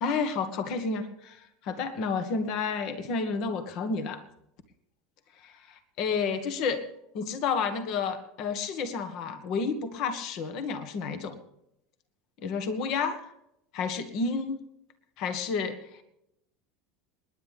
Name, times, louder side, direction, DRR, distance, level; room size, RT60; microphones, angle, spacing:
voice 1, 0.0-4.2 5.4-6.8 7.1-11.4 12.4-13.2 13.7-14.6 15.2-15.8, left 5 dB, 55° left, 9 dB, 1.7 m, -30 dB
27.5 x 10.5 x 3.6 m, 0.81 s
hypercardioid pair, 75°, 0 cm